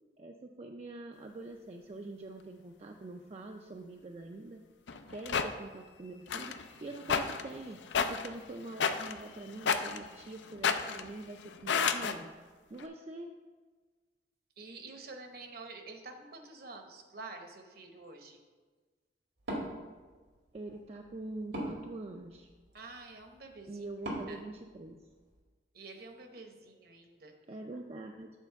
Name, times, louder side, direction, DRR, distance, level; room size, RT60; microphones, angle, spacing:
voice 1, 0.2-4.6 5.1-6.5 6.8-7.8 8.1-12.3 12.7-13.3 20.5-22.5 23.7-25.1 27.5-28.3, right 2 dB, 35° right, 2 dB, 0.4 m, -44 dB
sound 1, 4.9-5.5 6.3-12.2 12.8-12.9, left 6 dB, 80° left, 0.5 m, -32 dB
voice 2, 14.6-18.4 22.7-23.8 24.3-24.4 25.7-27.3, right 3 dB, 55° right, 5 dB, 0.9 m, -48 dB
Wood, 19.4-25.4, right 1 dB, 90° right, 1.9 m, -44 dB
8.3 x 4.3 x 5.8 m, 1.4 s
head